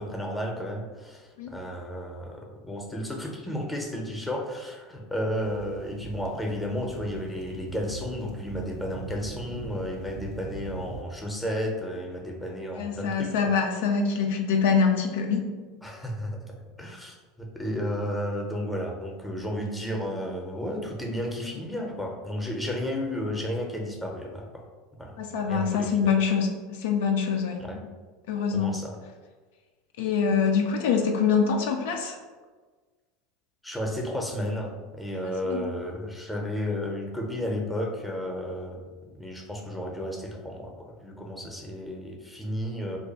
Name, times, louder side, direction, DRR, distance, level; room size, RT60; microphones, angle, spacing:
voice 1, 0.0-13.3 15.8-24.6 25.0-25.2 25.5-25.9 27.7-27.8 28.5-28.9 33.6-38.9 39.2-43.0, equal, 5° left, 0 dB, 0.7 m, -33 dB
sound 1, 5.4-11.0, right 3 dB, 45° right, 0.3 m, -41 dB
voice 2, 12.8-15.5 21.4-21.6 25.2-27.6 28.3-28.8 30.0-32.2 35.4-35.6, left 6 dB, 65° left, 3 dB, 0.3 m, -25 dB
2.5 x 2.2 x 4.0 m, 1.4 s
figure-of-eight pair, 80°, 0 cm